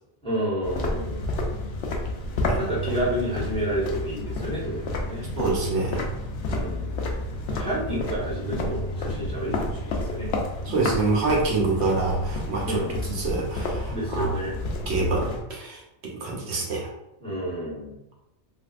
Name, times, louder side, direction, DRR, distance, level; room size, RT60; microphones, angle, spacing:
voice 1, 0.2-1.3 2.6-5.3 6.4-7.0 7.5-10.3 12.6-13.0 13.9-14.5 17.2-17.9, equal, 5° left, -8 dB, 1.0 m, -30 dB
sound 1, 0.6-15.4, left 2 dB, 90° left, 0.9 m, -30 dB
voice 2, 5.4-6.0 10.7-14.3 14.9-16.9, right 3 dB, 75° right, -2 dB, 1.0 m, -26 dB
3.4 x 2.7 x 2.4 m, 0.86 s
omnidirectional pair, 1.2 m